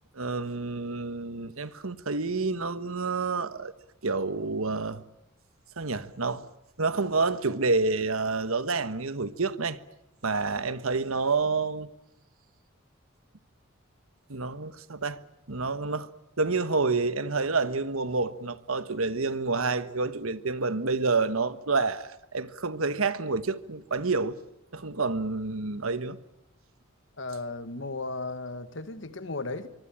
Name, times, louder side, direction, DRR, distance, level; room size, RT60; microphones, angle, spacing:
voice 1, 0.1-3.7 4.0-5.0 5.8-6.5 6.8-9.8 10.2-11.9 14.3-15.2 15.5-16.1 16.4-24.4 24.7-26.2, right 3 dB, 80° right, 1.4 m, -28 dB
voice 2, 27.2-29.7, left 3 dB, 60° left, 1.8 m, -35 dB
24.0 x 24.0 x 8.8 m
head